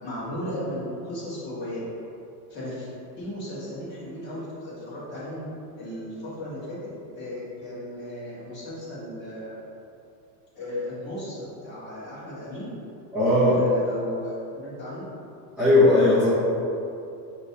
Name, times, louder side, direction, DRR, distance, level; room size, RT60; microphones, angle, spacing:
voice 1, 0.0-1.8 2.5-2.9 3.2-5.5 5.8-6.8 7.1-9.6 10.5-12.7 13.5-15.0, left 1 dB, 20° left, -11 dB, 1.4 m, -35 dB
voice 2, 13.1-13.6 15.6-16.3, left 2 dB, 5° right, -15 dB, 0.5 m, -18 dB
5.2 x 3.1 x 2.7 m, 2.7 s
supercardioid pair, 165°, 48 cm